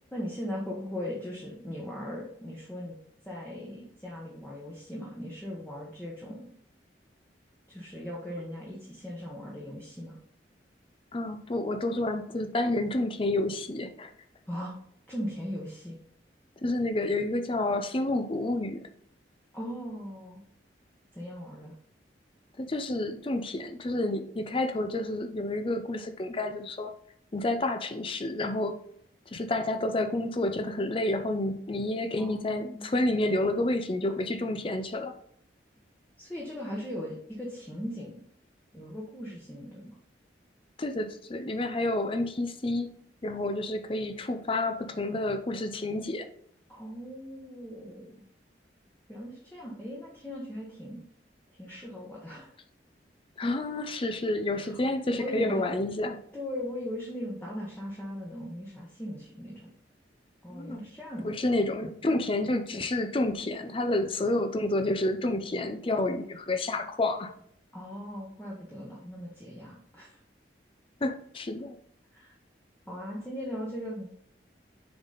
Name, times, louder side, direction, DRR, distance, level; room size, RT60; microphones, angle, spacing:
voice 1, 0.1-3.0 3.2-6.5 7.7-10.2 14.5-14.7 15.1-16.0 19.5-20.4 21.1-21.7 32.2-33.1 36.2-38.2 38.7-40.0 46.7-48.2 49.1-51.0 51.6-52.5 54.5-54.8 55.2-55.7 56.3-59.7 60.4-61.3 67.7-70.2 72.1-72.3 72.9-74.1, equal, 10° left, -4 dB, 1.1 m, -38 dB
voice 2, 11.1-14.1 16.6-18.9 22.6-26.9 27.3-28.8 29.3-35.1 40.8-42.9 43.2-46.3 53.4-56.2 60.5-60.8 61.2-67.3 71.0-71.7, left 2 dB, 30° left, 7 dB, 0.5 m, -29 dB
6.7 x 4.1 x 3.9 m, 0.67 s
head